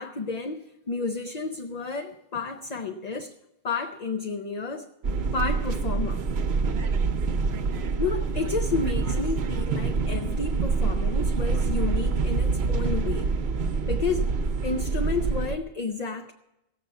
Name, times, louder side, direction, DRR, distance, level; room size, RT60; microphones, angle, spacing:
voice 1, 0.0-3.3 3.6-4.9 5.3-6.2 8.0-13.3 13.8-14.3 14.6-16.3, left 4 dB, 45° left, 0.7 m, -31 dB
sound 1, 5.0-15.6, right 4 dB, 80° right, 1.0 m, -26 dB
17.0 x 7.7 x 7.0 m
omnidirectional pair, 1.0 m